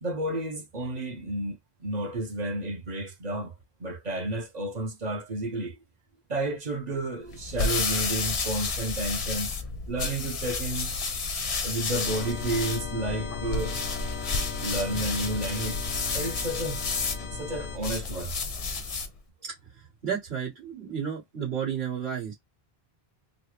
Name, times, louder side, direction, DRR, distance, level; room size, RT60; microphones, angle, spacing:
voice 1, 0.0-3.5 3.8-5.7 6.3-9.5 9.9-11.0 11.6-13.8 14.6-15.8 16.1-16.8 17.3-18.3, right 1 dB, 45° right, 0.8 m, -31 dB
sound 1, 7.3-19.2, left 4 dB, 40° left, 0.6 m, -31 dB
sound 2, 12.0-17.8, left 5 dB, 85° left, 1.0 m, -37 dB
voice 2, 19.7-22.3, right 8 dB, 75° right, 1.9 m, -32 dB
3.9 x 2.0 x 3.0 m
omnidirectional pair, 1.0 m